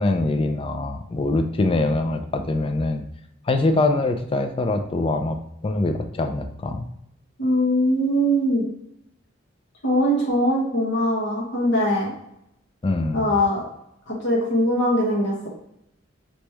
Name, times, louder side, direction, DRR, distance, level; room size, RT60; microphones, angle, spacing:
voice 1, 0.0-3.0 3.5-5.4 5.6-6.9 12.8-13.4, left 2 dB, 30° left, 7 dB, 0.4 m, -23 dB
voice 2, 7.4-8.6 9.8-12.1 13.1-13.7 14.1-15.5, equal, 65° left, -4 dB, 1.4 m, -21 dB
4.1 x 3.1 x 3.4 m, 0.78 s
head